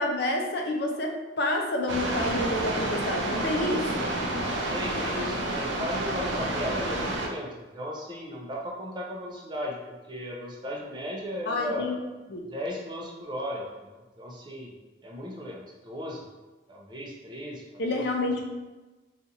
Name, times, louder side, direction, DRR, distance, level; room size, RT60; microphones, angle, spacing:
voice 1, 0.0-4.1 11.5-12.0 12.3-12.5 17.8-18.4, left 1 dB, 60° left, 2 dB, 0.5 m, -28 dB
sound 1, 1.9-7.3, right 1 dB, 75° right, 0.5 m, -29 dB
voice 2, 4.7-11.9 12.5-14.7 15.0-16.2 16.7-17.6 17.9-18.4, equal, 25° right, -2 dB, 0.5 m, -36 dB
2.8 x 2.4 x 3.8 m, 1.2 s
head